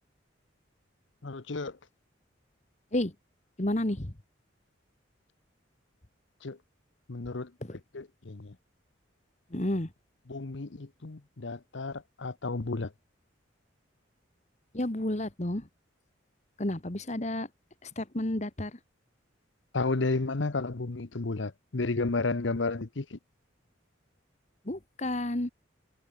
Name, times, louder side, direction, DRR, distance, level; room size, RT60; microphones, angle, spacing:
voice 1, 1.2-1.8 6.4-6.6 7.1-7.5 7.9-8.5 10.3-12.9 19.7-23.2, left 3 dB, 70° left, 0.9 m, -32 dB
voice 2, 3.6-4.1 7.6-7.8 9.5-9.9 14.7-15.7 16.6-17.5 17.8-18.8 24.6-25.5, left 1 dB, 35° left, 1.5 m, -31 dB
head